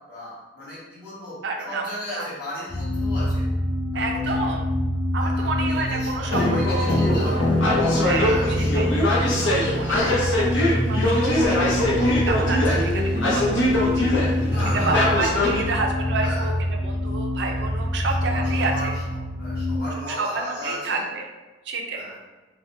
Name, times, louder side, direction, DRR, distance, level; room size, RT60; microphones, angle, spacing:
voice 1, 0.1-1.4 1.7-3.5 3.9-4.3 5.2-7.5 8.2-8.8 11.1-11.4 12.6-13.0 14.4-15.2 16.2-16.5 18.2-19.0 19.4-21.1 21.9-22.2, left 1 dB, 55° left, -10 dB, 1.2 m, -35 dB
voice 2, 1.4-1.8 2.1-2.2 3.9-4.7 5.1-7.4 8.0-9.1 9.4-12.6 13.2-13.4 13.9-14.1 14.8-16.5 16.8-18.9 20.1-21.3 21.7-22.0, right 3 dB, 65° right, 2 dB, 0.4 m, -29 dB
sound 1, 2.7-19.8, left 1 dB, 20° left, 0.5 m, -26 dB
sound 2, 6.3-15.6, left 1 dB, 80° left, 0.6 m, -22 dB
3.3 x 2.1 x 2.6 m, 1.2 s
head